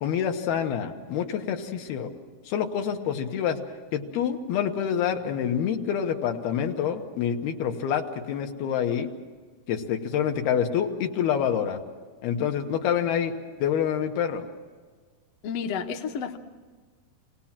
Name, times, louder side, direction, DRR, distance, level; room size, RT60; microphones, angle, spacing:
voice 1, 0.0-2.1 2.5-3.6 3.9-9.1 9.7-11.8 12.2-13.3 13.6-14.4, left 8 dB, 90° left, 4 dB, 3.3 m, -27 dB
voice 2, 15.4-16.4, left 6 dB, 60° left, 4 dB, 1.8 m, -31 dB
28.0 x 18.5 x 7.4 m, 1.5 s
omnidirectional pair, 4.3 m